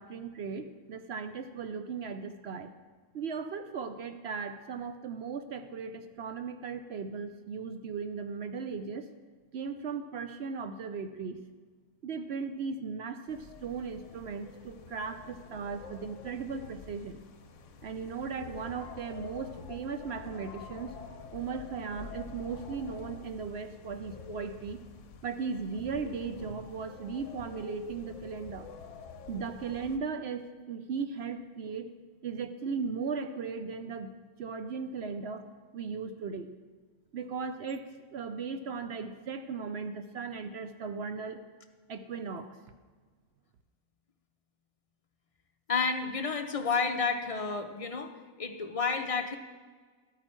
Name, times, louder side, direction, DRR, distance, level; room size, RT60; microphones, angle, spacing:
voice 1, 0.0-2.7 3.1-9.1 9.5-11.4 12.0-17.2 17.8-20.9 21.3-24.8 25.2-28.7 29.3-31.9 32.2-34.1 34.4-35.4 35.7-36.5 37.1-41.4 41.9-42.6, right 5 dB, 60° right, 9 dB, 0.7 m, -37 dB
sound 1, 13.3-30.0, left 4 dB, 65° left, 1.1 m, -47 dB
voice 2, 45.7-48.1 48.4-49.4, left 5 dB, 35° left, 5 dB, 0.6 m, -30 dB
12.0 x 8.9 x 4.4 m, 1.5 s
omnidirectional pair, 1.4 m